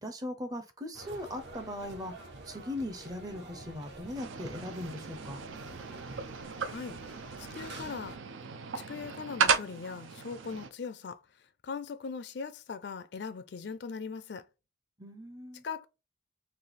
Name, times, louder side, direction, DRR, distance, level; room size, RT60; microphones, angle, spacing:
voice 1, 0.0-2.1 2.4-5.4 15.0-15.6, left 1 dB, 20° right, 0.6 m, -39 dB
sound 1, 0.9-8.2, right 2 dB, 60° right, 0.9 m, -48 dB
sound 2, 4.2-10.7, right 6 dB, 80° right, 0.5 m, -35 dB
voice 2, 6.7-7.0 7.4-8.2 8.7-11.2 11.6-14.4 15.6-15.9, left 5 dB, 60° left, 0.4 m, -40 dB
3.3 x 2.7 x 3.9 m
head